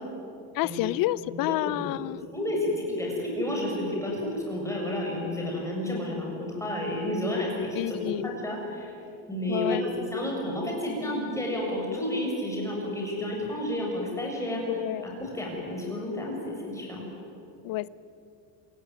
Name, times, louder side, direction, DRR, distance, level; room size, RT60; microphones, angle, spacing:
voice 1, 0.5-2.2 7.7-8.3 9.5-9.8 14.7-15.1 17.6-17.9, left 17 dB, 50° left, 20 dB, 0.7 m, -29 dB
voice 2, 1.3-2.0 2.3-8.9 9.3-14.7 15.0-17.0, left 1 dB, 5° left, -2 dB, 7.0 m, -31 dB
27.5 x 16.5 x 9.5 m, 2.6 s
cardioid pair, 145°, 44 cm